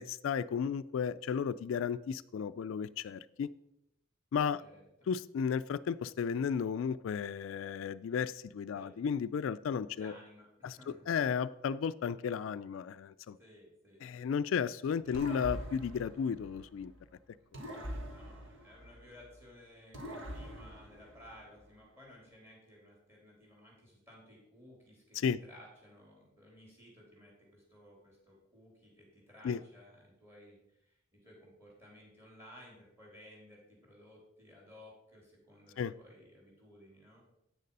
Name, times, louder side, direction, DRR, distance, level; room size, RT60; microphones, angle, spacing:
voice 1, 0.0-3.5 4.3-4.6 5.1-10.1 10.6-10.8 11.1-13.4 14.0-16.9 17.6-17.7 25.1-25.4 29.4-29.6 35.8-35.9, left 7 dB, 80° left, 14 dB, 0.3 m, -34 dB
voice 2, 4.6-5.1 8.7-8.9 9.9-11.4 13.4-14.3 15.1-15.2 17.7-37.2, left 1 dB, 10° right, -2 dB, 3.5 m, -57 dB
sound 1, 15.1-17.0 17.5-19.4 19.9-21.7, equal, 70° right, 1.5 m, -44 dB
8.9 x 6.6 x 5.4 m, 0.82 s
head